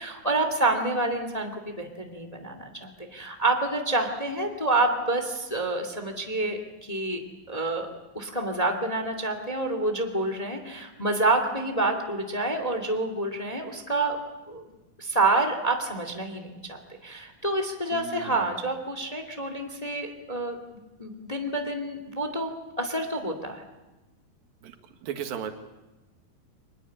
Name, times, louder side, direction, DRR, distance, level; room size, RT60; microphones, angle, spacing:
voice 1, 0.0-7.2 7.5-7.9 8.1-14.2 14.5-14.6 15.0-20.6 21.0-22.5 22.8-23.6, right 2 dB, 15° left, 5 dB, 1.9 m, -28 dB
voice 2, 17.9-18.5 24.6-24.8 25.0-25.5, right 8 dB, 80° right, 7 dB, 3.5 m, -35 dB
24.0 x 20.5 x 8.6 m, 1.1 s
omnidirectional pair, 4.1 m